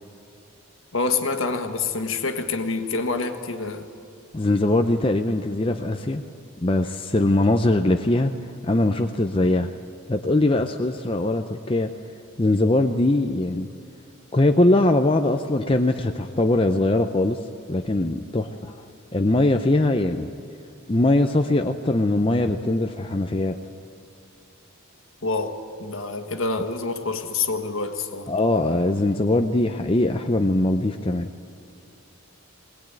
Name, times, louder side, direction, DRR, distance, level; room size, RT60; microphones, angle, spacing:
voice 1, 0.9-3.9 25.2-28.3, left 4 dB, 65° left, 6 dB, 1.6 m, -27 dB
voice 2, 4.3-6.2 6.6-8.3 8.6-9.7 10.1-11.9 12.4-13.7 14.3-17.4 17.7-18.7 19.1-20.3 20.9-23.6 28.3-31.3, left 2 dB, 25° left, 5 dB, 0.6 m, -21 dB
21.5 x 19.0 x 9.0 m, 2.3 s
head